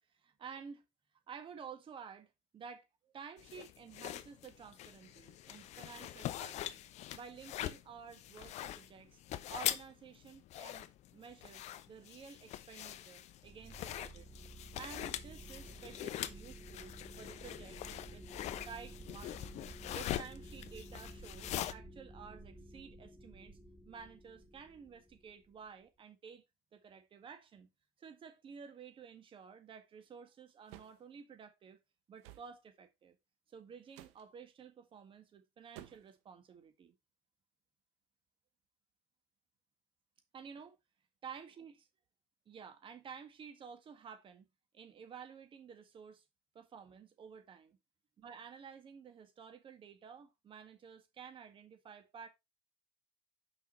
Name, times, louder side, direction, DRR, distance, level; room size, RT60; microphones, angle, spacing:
voice 1, 0.1-0.8 1.3-9.2 9.5-14.3 14.7-18.3 18.7-19.6 19.9-23.6 23.9-26.4 26.7-27.7 28.0-31.8 32.1-33.2 33.5-36.9 40.3-40.8 41.2-41.8 42.5-44.5 44.7-46.2 46.5-47.8 48.2-52.3, right 6 dB, 35° right, 1.8 m, -52 dB
sound 1, 3.4-21.7, left 12 dB, 50° left, 0.7 m, -43 dB
sound 2, 13.4-25.7, right 1 dB, ahead, 0.8 m, -53 dB
sound 3, 30.7-31.0 32.2-32.5 33.9-34.2 35.7-36.2, right 14 dB, 75° right, 1.0 m, -53 dB
6.2 x 5.4 x 4.3 m
supercardioid pair, 100°, 15 cm